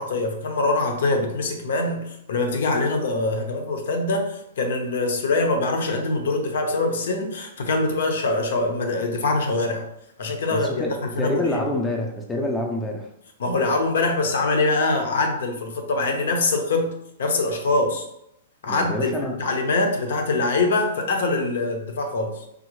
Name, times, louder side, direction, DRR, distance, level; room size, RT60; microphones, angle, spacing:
voice 1, 0.0-9.9 10.2-11.6 13.4-18.1 18.6-19.1 19.4-22.4, left 2 dB, 75° left, 4 dB, 0.7 m, -24 dB
voice 2, 10.5-13.1 18.7-19.4, left 1 dB, 10° left, 1 dB, 0.5 m, -27 dB
3.7 x 2.0 x 3.0 m, 0.79 s
hypercardioid pair, 145°, 0 cm